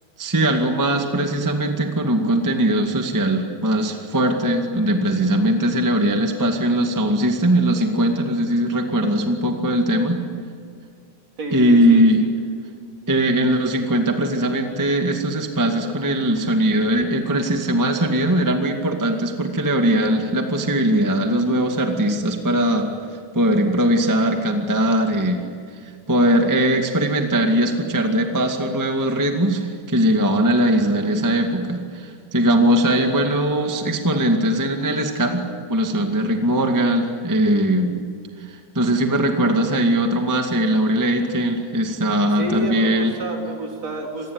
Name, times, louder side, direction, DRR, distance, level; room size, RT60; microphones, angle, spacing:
voice 1, 0.2-10.2 11.5-12.2 13.1-22.9 23.3-25.5 26.1-35.4 35.7-38.0 38.5-43.1, right 1 dB, 10° right, 3 dB, 0.8 m, -20 dB
voice 2, 11.4-12.3 33.0-33.2 42.3-44.3, right 1 dB, 45° right, 1 dB, 4.6 m, -29 dB
27.0 x 21.0 x 9.6 m, 2.1 s
omnidirectional pair, 4.3 m